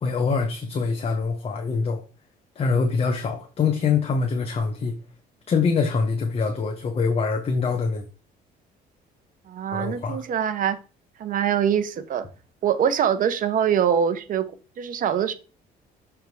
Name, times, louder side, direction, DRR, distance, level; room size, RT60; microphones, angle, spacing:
voice 1, 0.0-2.0 2.5-4.9 5.5-8.0 9.7-10.2, left 5 dB, 35° left, 0.9 m, -24 dB
voice 2, 9.5-10.8 11.2-12.2 12.6-14.5 14.8-15.3, right 8 dB, 55° right, 0.8 m, -23 dB
6.4 x 3.5 x 4.6 m
cardioid pair, 110°, 17 cm